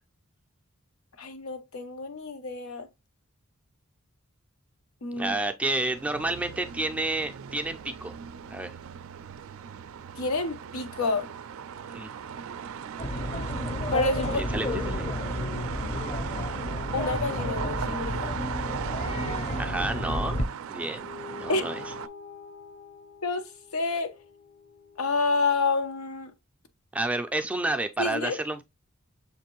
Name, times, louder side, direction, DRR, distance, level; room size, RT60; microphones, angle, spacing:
voice 1, 1.2-2.9 5.0-5.3 10.2-11.3 13.9-14.4 16.9-18.3 21.5-21.7 23.2-23.4 23.7-24.1 25.0-26.3 28.0-28.4, left 3 dB, 85° left, 0.7 m, -28 dB
voice 2, 5.2-8.1 8.5-8.7 11.9-12.1 14.4-15.1 19.6-20.4 20.7-21.1 21.4-21.8 26.9-28.6, right 2 dB, 5° right, 0.4 m, -30 dB
sound 1, 5.6-22.1, right 7 dB, 70° right, 0.4 m, -38 dB
sound 2, 13.0-20.5, left 1 dB, 30° left, 0.6 m, -31 dB
sound 3, 21.0-25.8, left 5 dB, 55° left, 1.0 m, -46 dB
6.6 x 2.6 x 2.9 m
head